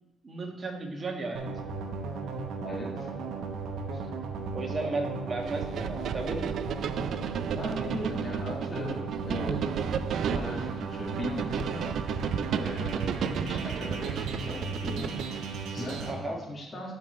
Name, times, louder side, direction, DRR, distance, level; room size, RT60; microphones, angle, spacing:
voice 1, 0.2-1.5 3.9-4.0 4.5-6.6 16.1-16.4, right 3 dB, 35° right, 2 dB, 1.4 m, -34 dB
sound 1, 1.3-16.1, right 4 dB, 85° right, 0.9 m, -36 dB
voice 2, 2.6-3.1 7.5-9.9 10.3-11.9 12.5-16.9, left 1 dB, 35° left, -4 dB, 1.7 m, -38 dB
sound 2, 5.5-15.4, right 8 dB, 70° right, 0.3 m, -33 dB
12.0 x 4.5 x 3.1 m, 1.1 s
cardioid pair, 90°, 0 cm